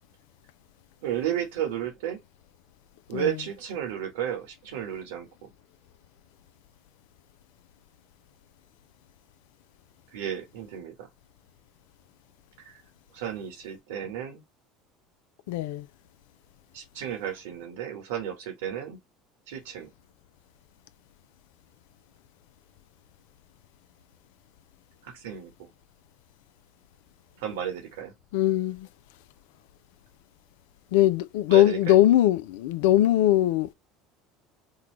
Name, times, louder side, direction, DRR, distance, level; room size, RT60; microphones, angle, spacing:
voice 1, 1.0-2.2 3.1-5.5 10.1-11.1 12.6-12.8 13.1-14.4 16.7-19.0 19.5-19.9 25.0-25.7 27.4-28.1 31.5-31.9, right 10 dB, 75° right, 1.2 m, -33 dB
voice 2, 3.1-3.5 15.5-15.9 28.3-28.9 30.9-33.7, left 14 dB, 75° left, 0.3 m, -21 dB
3.8 x 2.3 x 3.0 m
hypercardioid pair, 75°, 0 cm